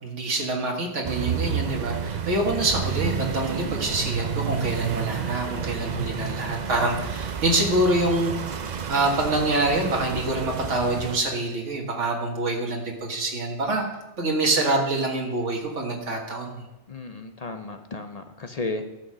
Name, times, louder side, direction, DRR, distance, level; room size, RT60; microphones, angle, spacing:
voice 1, 0.0-13.8 14.2-16.7, right 2 dB, 90° right, 0 dB, 2.0 m, -26 dB
sound 1, 1.0-11.2, right 7 dB, 45° right, 0.6 m, -30 dB
voice 2, 16.9-18.8, left 3 dB, 40° left, 7 dB, 0.6 m, -33 dB
13.0 x 6.3 x 6.2 m, 1.0 s
omnidirectional pair, 1.2 m